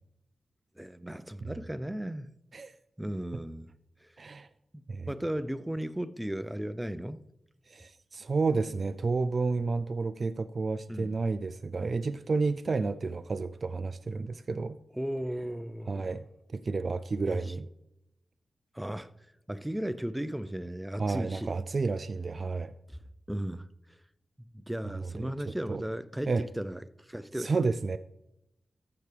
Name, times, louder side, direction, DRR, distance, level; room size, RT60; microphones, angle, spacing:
voice 1, 0.8-2.3 3.0-3.7 4.0-4.1 5.1-7.2 10.9-11.2 15.0-16.1 17.2-17.5 18.7-19.1 19.5-21.5 22.9-23.0 23.3-23.7 24.7-27.5, right 1 dB, 10° right, 0.5 m, -35 dB
voice 2, 4.2-4.5 4.9-5.1 7.7-14.8 15.9-16.2 16.5-17.7 21.0-22.7 25.0-25.3 25.7-25.8 26.3-26.4 27.4-28.0, right 4 dB, 55° right, 0.3 m, -31 dB
13.5 x 5.9 x 3.3 m
cardioid pair, 45°, 0 cm